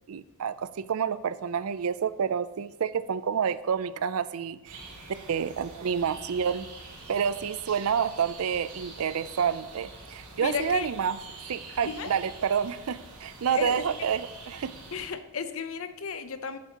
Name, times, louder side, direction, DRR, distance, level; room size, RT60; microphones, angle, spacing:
voice 1, 0.1-4.8 5.3-6.7 7.1-11.2 11.5-14.7, right 7 dB, 75° right, 15 dB, 0.4 m, -29 dB
sound 1, 4.6-15.1, right 3 dB, 90° right, 2.9 m, -45 dB
voice 2, 10.4-10.9 11.8-12.1 13.5-13.8 14.9-16.6, left 6 dB, 65° left, 10 dB, 0.7 m, -33 dB
11.5 x 9.5 x 2.9 m, 1.0 s
head